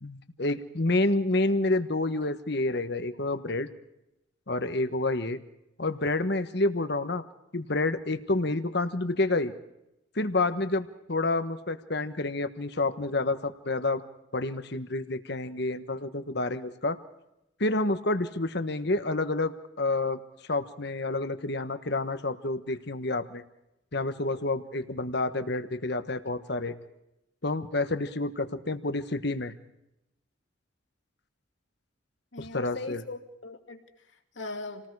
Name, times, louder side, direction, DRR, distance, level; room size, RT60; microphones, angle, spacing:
voice 1, 0.0-3.7 4.5-5.4 5.8-7.2 7.5-9.5 10.1-14.0 14.3-17.0 17.6-20.2 20.5-23.4 23.9-26.7 27.4-29.5 32.4-33.0, left 2 dB, 55° left, 10 dB, 1.3 m, -29 dB
voice 2, 32.3-34.9, left 2 dB, 75° left, 4 dB, 2.6 m, -40 dB
29.0 x 19.0 x 4.8 m, 0.88 s
head